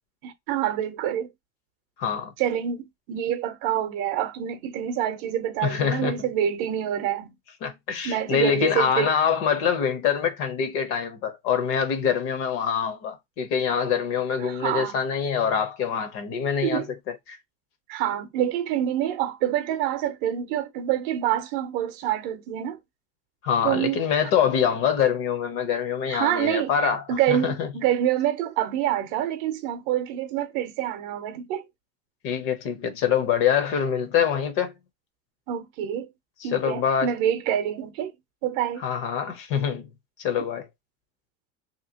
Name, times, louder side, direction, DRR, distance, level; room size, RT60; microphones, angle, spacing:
voice 1, 0.2-1.3 2.4-7.4 8.0-9.1 14.4-15.0 16.6-16.9 17.9-22.8 23.6-24.0 26.1-26.7 27.1-31.6 35.5-36.1 36.4-38.1 38.4-38.8, right 11 dB, 55° right, 0.6 m, -26 dB
voice 2, 2.0-2.3 5.6-6.2 7.6-17.4 23.4-27.7 32.2-34.7 36.4-37.1 38.8-39.9 40.2-40.7, left 7 dB, 45° left, 0.7 m, -25 dB
2.8 x 2.7 x 2.7 m
cardioid pair, 180°, 32 cm